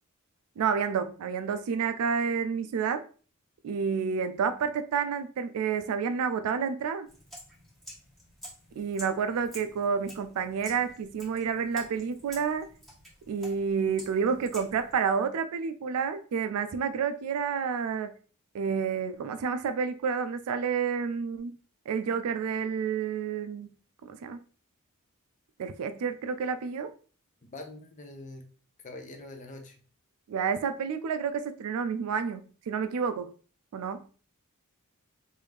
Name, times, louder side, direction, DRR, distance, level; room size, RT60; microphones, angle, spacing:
voice 1, 0.6-3.0 3.6-7.1 8.8-12.7 13.3-18.1 18.5-21.6 21.9-23.7 24.0-24.4 25.6-26.9 30.3-33.3 33.7-34.1, right 6 dB, 80° right, 0.3 m, -29 dB
sound 1, 7.1-14.9, equal, ahead, 1.0 m, -49 dB
voice 2, 27.4-28.5 28.8-29.8, left 2 dB, 35° left, 0.6 m, -44 dB
3.2 x 2.6 x 3.3 m
head